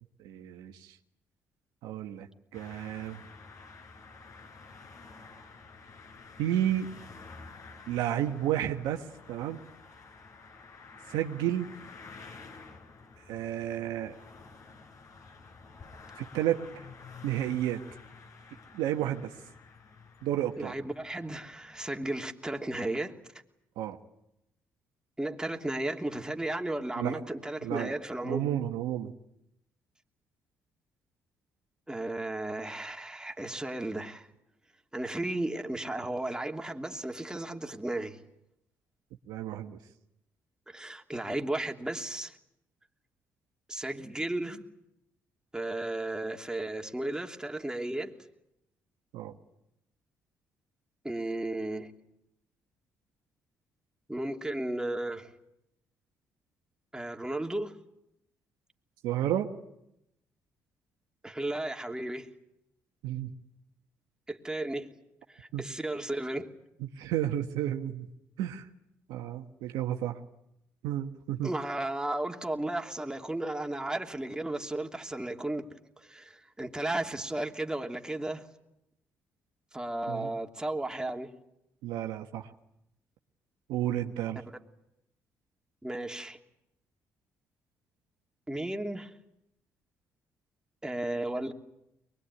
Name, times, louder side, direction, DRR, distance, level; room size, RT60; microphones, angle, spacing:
voice 1, 0.2-1.0 1.8-3.2 6.4-6.9 7.9-9.6 11.1-11.7 13.3-14.2 16.2-16.6 17.2-17.8 18.7-19.3 20.2-20.7 23.8-24.0 27.0-27.2 27.6-27.9 28.2-29.1 39.3-39.8 49.1-49.3 59.0-59.5 63.0-63.3 65.5-65.6 66.8-68.1 68.4-68.7 69.1-70.2 70.8-71.5 80.1-80.3 81.8-82.5 83.7-84.4, right 12 dB, 80° right, 1.4 m, -31 dB
sound 1, 2.5-22.0, left 4 dB, 50° left, 4.4 m, -51 dB
voice 2, 20.6-23.2 25.2-28.5 31.9-34.3 34.9-38.2 40.7-42.4 43.7-44.6 45.5-48.1 51.0-51.9 54.1-55.3 56.9-57.7 61.2-62.3 64.3-64.9 65.3-66.5 71.4-75.7 76.0-78.5 79.7-81.3 85.8-86.4 88.5-89.1 90.8-91.5, right 1 dB, 10° right, 2.9 m, -34 dB
23.0 x 21.5 x 9.8 m
supercardioid pair, 55°, 7 cm